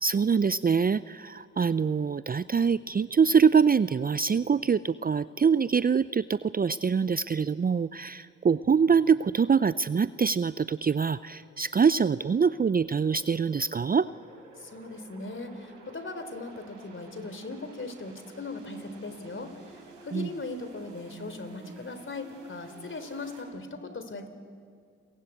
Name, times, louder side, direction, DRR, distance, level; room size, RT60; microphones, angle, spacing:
voice 1, 0.0-14.1 20.1-20.3, right 6 dB, 30° right, 16 dB, 0.6 m, -24 dB
sound 1, 8.6-23.4, right 2 dB, 85° right, 6.2 m, -53 dB
voice 2, 14.6-24.3, left 2 dB, 40° left, 9 dB, 3.8 m, -39 dB
28.5 x 22.5 x 8.5 m, 2.2 s
supercardioid pair, 50°, 31 cm